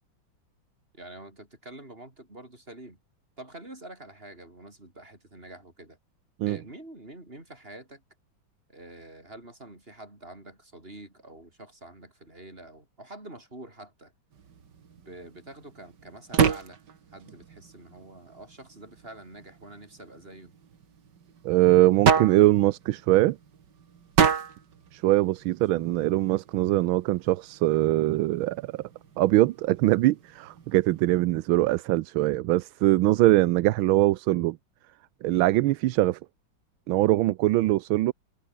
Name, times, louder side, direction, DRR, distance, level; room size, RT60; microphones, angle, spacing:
voice 1, 0.9-3.0 3.4-6.0 6.4-8.0 8.7-14.1 14.9-16.8 17.1-20.5, right 1 dB, 25° right, 6.7 m, -46 dB
sound 1, 14.3-31.2, right 7 dB, 60° right, 2.4 m, -32 dB
voice 2, 21.4-23.4 24.9-28.8 29.2-34.6 35.2-36.2 36.9-38.1, right 16 dB, 85° right, 1.5 m, -22 dB
omnidirectional pair, 2.2 m